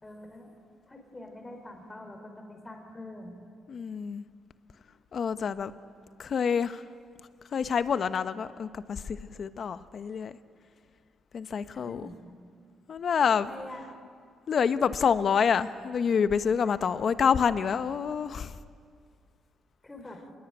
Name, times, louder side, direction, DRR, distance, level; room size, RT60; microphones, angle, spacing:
voice 1, 0.0-0.5 0.9-3.4 11.7-12.5 13.5-13.8 19.8-20.2, left 1 dB, 15° left, 4 dB, 4.5 m, -45 dB
voice 2, 3.7-4.3 5.1-5.7 6.2-6.9 7.5-10.4 11.3-12.1 12.9-13.5 14.5-18.6, left 6 dB, 45° left, 13 dB, 1.0 m, -27 dB
26.0 x 21.0 x 9.2 m, 2.1 s
cardioid pair, 115°, 0 cm